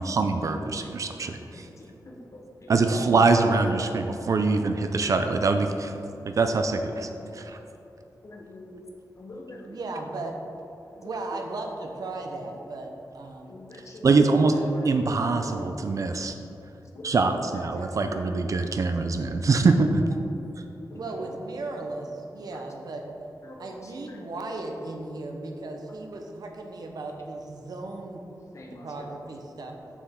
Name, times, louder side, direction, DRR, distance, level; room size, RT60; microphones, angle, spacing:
voice 1, 0.0-1.7 2.7-5.9 6.2-7.6 14.0-14.6 14.8-16.3 17.0-20.0, right 3 dB, 50° right, 6 dB, 0.4 m, -23 dB
voice 2, 1.5-2.7 3.7-3.8 7.2-7.4 8.2-8.8 9.2-9.8 11.0-11.1 13.5-14.1 14.6-14.8 16.9-17.0 17.5-18.3 18.5-18.6 20.9-21.0 22.5-22.6 23.4-23.8 24.1-24.2 28.5-29.1, left 2 dB, 45° left, 1 dB, 0.9 m, -45 dB
voice 3, 2.8-3.2 9.6-10.3 11.0-13.6 14.6-15.8 20.9-23.0 23.6-28.2 28.8-29.7, right 2 dB, 65° right, 2 dB, 0.8 m, -36 dB
7.1 x 6.8 x 3.6 m, 2.9 s
wide cardioid pair, 160°, 7 cm